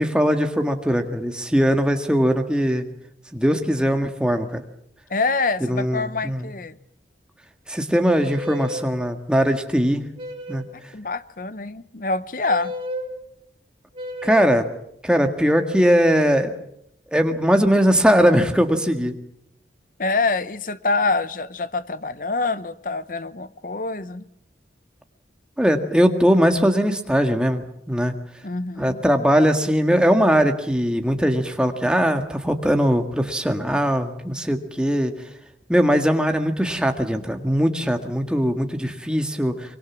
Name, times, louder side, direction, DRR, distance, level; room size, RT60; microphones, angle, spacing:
voice 1, 0.0-2.9 3.3-4.6 5.6-6.5 7.7-10.1 10.5-10.6 14.2-14.7 15.0-16.5 17.1-19.1 25.6-28.1 28.8-35.3 35.7-39.8, equal, 5° right, 1.8 m, -20 dB
voice 2, 5.1-6.8 10.7-12.7 20.0-24.2 28.4-29.0, left 3 dB, 50° left, 0.9 m, -26 dB
sound 1, 8.0-8.9 10.2-10.8 12.5-13.1 13.9-14.6, left 1 dB, 30° right, 3.2 m, -33 dB
24.5 x 23.0 x 7.3 m
head